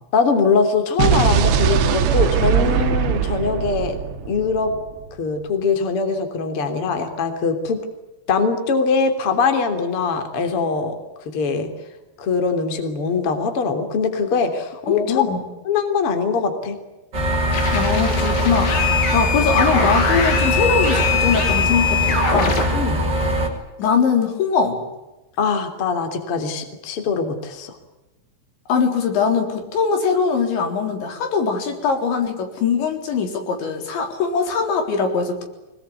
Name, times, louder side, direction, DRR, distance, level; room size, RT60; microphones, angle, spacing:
voice 1, 0.1-3.9 4.3-4.7 5.2-7.8 8.3-10.9 11.3-11.7 12.2-15.2 15.7-16.8 22.7-23.0 25.4-27.8, left 5 dB, 30° left, 6 dB, 3.5 m, -22 dB
Explosion, 1.0-5.1, right 7 dB, 70° right, 3.6 m, -20 dB
voice 2, 14.9-15.4 17.7-22.6 23.8-24.8 28.7-35.4, left 5 dB, 70° left, 4 dB, 6.1 m, -21 dB
sound 1, 17.1-23.5, equal, 20° right, 5.7 m, -22 dB
sound 2, 17.5-22.6, left 6 dB, 90° left, 7.6 m, -22 dB
25.5 x 22.0 x 9.7 m, 1.0 s
omnidirectional pair, 5.4 m